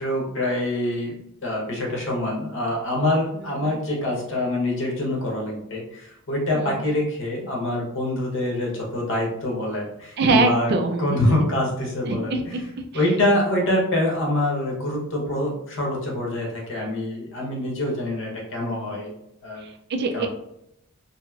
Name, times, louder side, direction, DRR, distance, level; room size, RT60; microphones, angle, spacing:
voice 1, 0.0-10.7 11.0-12.6 12.9-19.1 19.4-19.6 20.1-20.3, left 1 dB, 60° left, -2 dB, 0.9 m, -25 dB
voice 2, 6.5-6.9 10.2-11.5 12.1-12.6 19.6-20.3, right 3 dB, 50° right, 5 dB, 0.4 m, -24 dB
2.8 x 2.7 x 2.3 m, 0.78 s
head